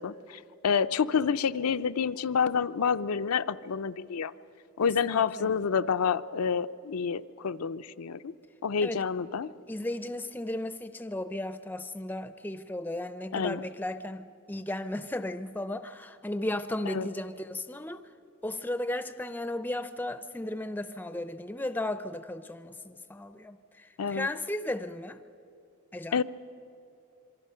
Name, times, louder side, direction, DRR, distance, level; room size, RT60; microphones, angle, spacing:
voice 1, 0.0-4.3 4.8-8.3 8.6-9.5 13.3-13.6 16.8-17.1 24.0-24.3 26.1-26.2, left 6 dB, 85° left, 0.5 m, -28 dB
voice 2, 4.8-5.5 8.8-9.0 9.7-18.1 18.4-25.2 25.9-26.2, left 1 dB, 10° left, 0.4 m, -35 dB
27.0 x 23.5 x 5.6 m
head